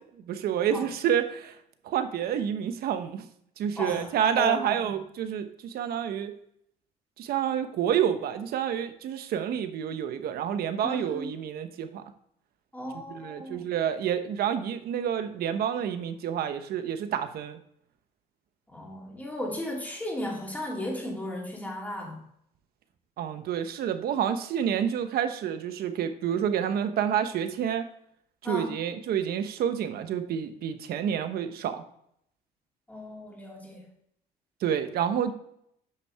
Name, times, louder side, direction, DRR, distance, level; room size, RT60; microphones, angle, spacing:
voice 1, 0.2-1.6 1.8-3.3 3.6-6.3 7.2-12.0 13.1-17.6 23.2-27.9 28.4-31.8 34.6-35.3, right 9 dB, 65° right, 9 dB, 0.9 m, -28 dB
voice 2, 3.8-4.1 4.4-4.8 10.8-11.3 12.7-13.6 18.7-22.2 28.4-28.7 32.9-33.8, left 1 dB, 10° left, -2 dB, 2.6 m, -35 dB
9.2 x 5.9 x 3.4 m, 0.71 s
cardioid pair, 110°, 17 cm